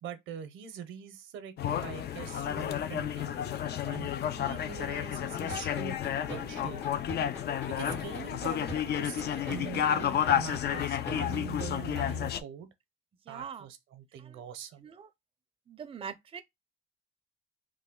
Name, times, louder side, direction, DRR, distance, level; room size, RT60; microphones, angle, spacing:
voice 1, 0.0-3.3 3.8-6.8 7.7-12.7 13.3-14.9, right 8 dB, 80° right, 0.6 m, -43 dB
sound 1, 1.6-12.4, left 10 dB, 55° left, 0.4 m, -31 dB
sound 2, 1.6-11.6, left 4 dB, 40° left, 0.9 m, -50 dB
sound 3, 5.5-11.6, left 1 dB, 70° left, 2.1 m, -40 dB
voice 2, 13.3-13.7 14.2-14.4 14.8-15.1 15.7-16.4, right 7 dB, 30° right, 0.4 m, -42 dB
3.1 x 2.2 x 3.5 m
cardioid pair, 90°, 20 cm